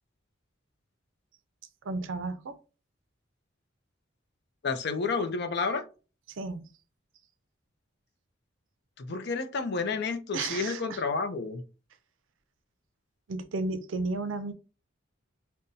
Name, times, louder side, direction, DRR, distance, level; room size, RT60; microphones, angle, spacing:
voice 1, 1.8-2.6 6.3-6.7 10.3-11.0 13.3-14.5, right 3 dB, 75° right, 0.5 m, -33 dB
voice 2, 4.6-5.8 9.0-11.6, left 4 dB, 60° left, 0.5 m, -30 dB
5.3 x 2.2 x 2.6 m
head